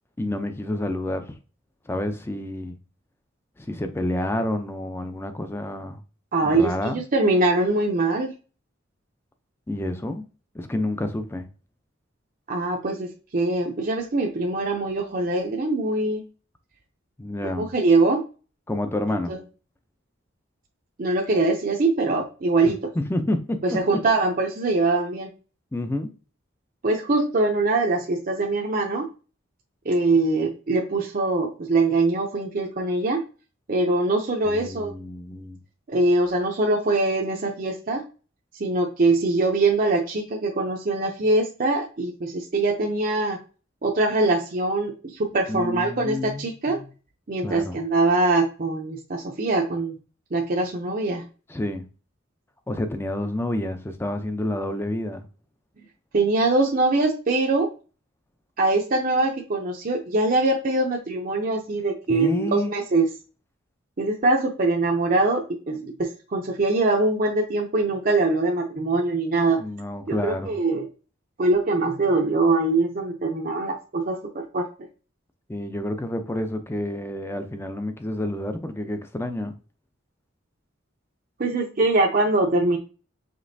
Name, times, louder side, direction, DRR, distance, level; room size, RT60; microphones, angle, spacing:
voice 1, 0.2-1.2 1.9-2.8 3.6-6.0 6.4-7.0 9.7-10.2 10.5-11.5 17.2-17.7 18.7-19.3 22.6-23.8 25.7-26.1 34.4-35.6 45.5-46.9 47.4-47.8 51.5-51.9 52.7-55.2 62.1-62.7 69.5-70.6 75.5-79.5, left 1 dB, 10° left, 0.4 m, -29 dB
voice 2, 6.3-8.3 12.5-16.2 17.4-18.2 19.3-19.4 21.0-22.8 23.6-25.3 26.8-29.1 29.8-33.2 33.7-34.9 35.9-38.0 38.6-43.4 43.8-46.8 47.3-50.0 50.3-51.3 56.1-57.7 58.6-63.1 64.0-69.6 70.1-70.8 71.4-74.7 81.4-82.8, right 2 dB, 45° right, 0.6 m, -23 dB
5.2 x 3.1 x 2.6 m
head